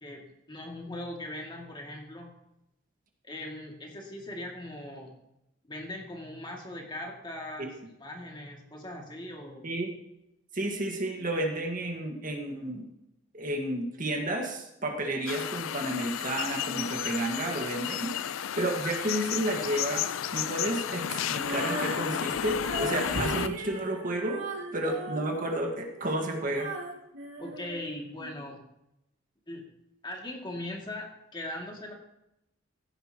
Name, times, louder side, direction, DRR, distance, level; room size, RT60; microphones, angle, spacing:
voice 1, 0.0-2.3 3.2-5.1 5.7-9.7 27.4-28.6 29.5-29.6 30.0-31.9, left 1 dB, 25° left, 0 dB, 2.3 m, -40 dB
voice 2, 10.5-12.9 13.3-20.0 20.3-24.4 24.7-26.7, right 1 dB, 45° right, 2 dB, 1.6 m, -31 dB
sound 1, 15.3-23.5, left 9 dB, 85° left, 0.4 m, -32 dB
Female singing, 21.3-28.4, right 2 dB, 75° right, 2.3 m, -38 dB
15.5 x 10.0 x 3.0 m, 0.85 s
head